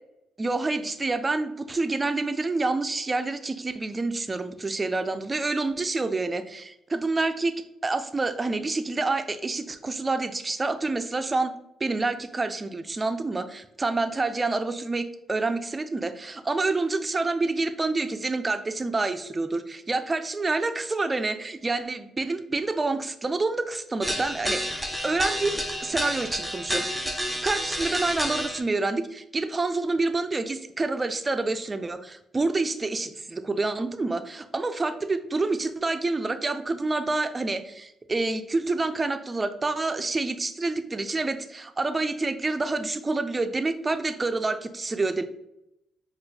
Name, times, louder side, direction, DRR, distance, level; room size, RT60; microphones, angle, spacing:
voice 1, 0.4-7.6 7.8-27.1 27.4-45.2, right 3 dB, 25° right, 9 dB, 0.4 m, -28 dB
sound 1, 24.0-28.6, equal, 5° left, 0.7 m, -30 dB
4.2 x 2.4 x 3.3 m, 0.83 s
cardioid pair, 90°, 0 cm